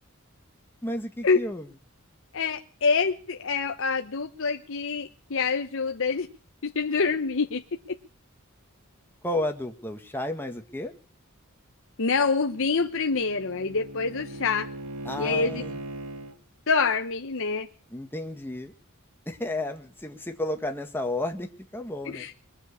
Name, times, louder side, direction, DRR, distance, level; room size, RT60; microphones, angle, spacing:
voice 1, 0.8-1.7 9.2-10.9 15.0-15.8 17.9-18.7 19.2-22.3, left 1 dB, 10° left, 4 dB, 1.7 m, -32 dB
voice 2, 2.3-6.3 6.6-7.6 12.0-14.7 15.2-15.6 16.7-17.7 22.1-22.4, left 4 dB, 60° left, 5 dB, 0.9 m, -26 dB
Bowed string instrument, 12.3-16.4, right 1 dB, 80° right, 1.5 m, -39 dB
21.5 x 7.4 x 8.4 m, 0.42 s
head